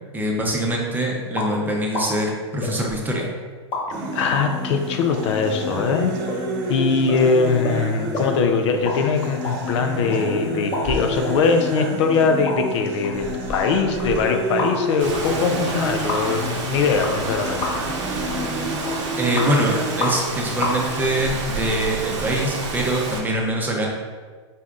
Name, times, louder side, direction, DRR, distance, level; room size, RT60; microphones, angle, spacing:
voice 1, 0.1-3.3 19.2-23.9, right 1 dB, 10° right, -1 dB, 0.6 m, -23 dB
sound 1, 1.3-1.5 1.9-2.1 2.6-3.3 3.7-3.8 4.3-4.4 5.1-5.2 5.7-5.8 6.3-6.4 6.7-6.8 7.1-7.2 7.6-7.8 8.1-8.3 8.7-9.0 9.2-10.2 10.7-11.4 11.8-11.9 12.4-12.6 13.0-14.9 15.1-15.2 16.1-16.2 17.0-17.3 17.6-17.9 18.3-18.5 18.9-19.5 20.0-20.3 20.6-20.7, left 3 dB, 30° left, 1.2 m, -29 dB
sound 2, 3.9-19.9, equal, 50° right, 0.8 m, -29 dB
voice 2, 4.1-6.1 6.7-17.6, left 5 dB, 70° left, 5 dB, 0.5 m, -21 dB
Rain, 15.0-23.2, right 3 dB, 80° right, 0.8 m, -29 dB
4.1 x 3.3 x 2.4 m, 1.5 s
hypercardioid pair, 120°, 15 cm